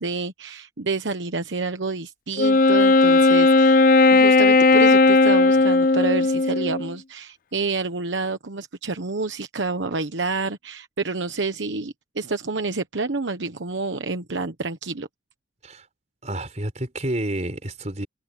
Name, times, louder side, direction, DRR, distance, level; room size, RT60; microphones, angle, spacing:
voice 1, 0.0-3.8 4.1-15.1, right 3 dB, 90° right, 1.1 m, -28 dB
Wind instrument woodwind instrument, 2.4-6.9, left 3 dB, 50° left, 0.5 m, -16 dB
voice 2, 16.2-18.1, right 1 dB, 40° right, 4.5 m, -29 dB
head